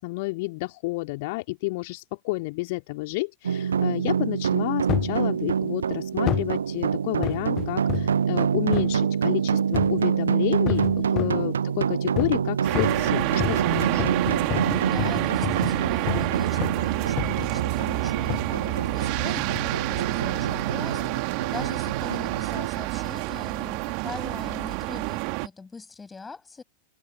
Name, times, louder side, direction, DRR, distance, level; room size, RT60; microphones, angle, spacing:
voice 1, 0.0-14.1, left 24 dB, 50° left, 3.3 m, -30 dB
sound 1, 3.4-22.7, right 7 dB, 70° right, 0.8 m, -26 dB
sound 2, 4.9-5.2 6.3-6.6 7.2-8.2 8.7-9.0 9.7-10.1 10.7-11.5 12.2-12.4 12.7-16.3 16.6-16.9 17.2-17.6 18.3-18.5 19.4-19.7 20.3-20.4, left 14 dB, 35° left, 1.0 m, -30 dB
voice 2, 10.9-11.3 14.6-26.6, left 4 dB, 15° left, 7.3 m, -41 dB
sound 3, 12.6-25.5, right 33 dB, 45° right, 2.8 m, -28 dB
figure-of-eight pair, 90°, 0 cm